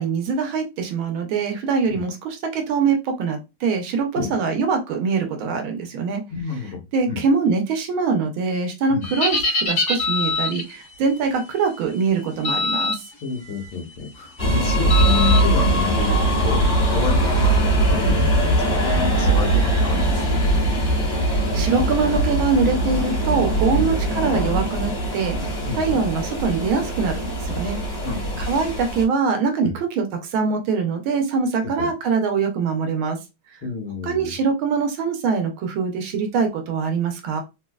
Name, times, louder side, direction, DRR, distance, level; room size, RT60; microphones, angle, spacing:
voice 1, 0.0-6.2 6.9-13.0 21.2-25.4 25.8-27.8 28.4-33.2 34.0-37.4, right 5 dB, 75° right, 5 dB, 1.5 m, -23 dB
voice 2, 6.3-6.8 7.1-7.2 8.9-9.1 13.2-20.6 23.8-23.9 25.7-26.0 28.0-28.4 29.6-29.8 31.8-31.9 33.6-34.3, left 5 dB, 75° left, 2 dB, 1.8 m, -29 dB
sound 1, 9.0-10.7 12.4-13.0 13.4-13.7 14.9-15.4, left 3 dB, 50° left, 1.9 m, -23 dB
sound 2, 14.4-29.0, right 1 dB, 25° left, 1.4 m, -21 dB
4.1 x 2.6 x 2.3 m, 0.25 s
omnidirectional pair, 2.3 m